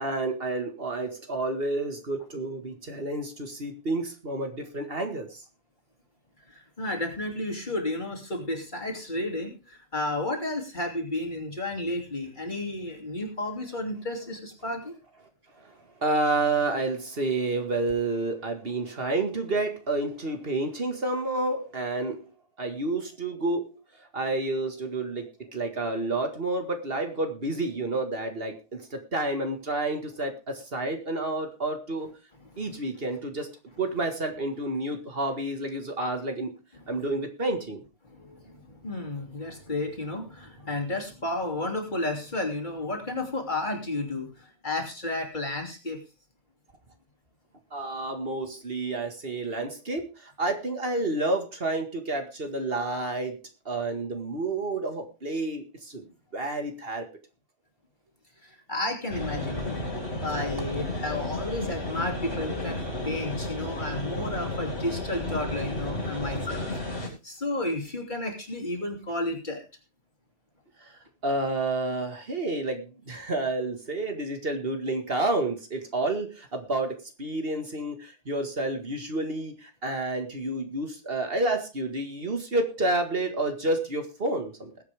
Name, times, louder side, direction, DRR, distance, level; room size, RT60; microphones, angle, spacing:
voice 1, 0.0-5.4 15.6-22.3 22.6-32.1 32.6-33.5 33.8-36.5 36.9-37.8 47.7-57.1 70.8-84.7, right 2 dB, 55° right, 5 dB, 2.1 m, -30 dB
voice 2, 6.5-14.9 32.5-32.6 38.0-46.0 58.4-59.8 60.2-66.7 66.9-69.6, left 2 dB, 40° left, 2 dB, 3.2 m, -32 dB
sound 1, 59.1-67.1, left 1 dB, 70° left, 4.9 m, -32 dB
20.0 x 8.4 x 3.5 m, 0.30 s
omnidirectional pair, 1.2 m